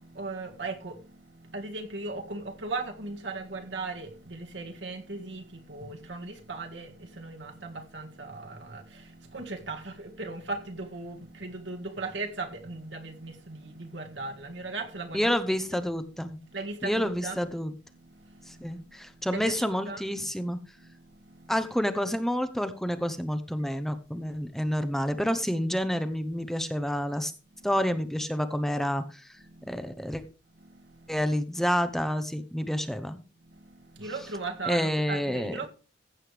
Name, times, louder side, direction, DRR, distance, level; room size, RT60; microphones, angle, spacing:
voice 1, 0.0-15.9 16.4-17.5 17.8-21.7 23.6-23.8 24.2-24.3 27.6-27.8 29.4-29.8 30.5-31.3 33.4-35.7, right 3 dB, 65° right, 1.8 m, -38 dB
voice 2, 15.1-16.4 16.8-17.7 18.5-20.6 21.5-27.3 27.6-29.4 29.7-30.2 31.1-33.2 34.7-35.7, equal, ahead, 0.7 m, -29 dB
15.0 x 7.8 x 3.3 m
head